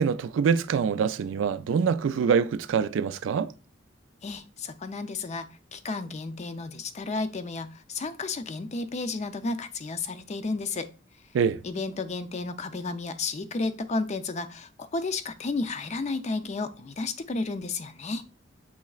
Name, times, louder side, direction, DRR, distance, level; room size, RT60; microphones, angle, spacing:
voice 1, 0.0-3.5 11.3-11.6, right 6 dB, 80° right, 0.3 m, -25 dB
voice 2, 4.2-10.9 11.6-18.2, left 3 dB, 35° left, 0.4 m, -32 dB
7.4 x 3.0 x 2.3 m
head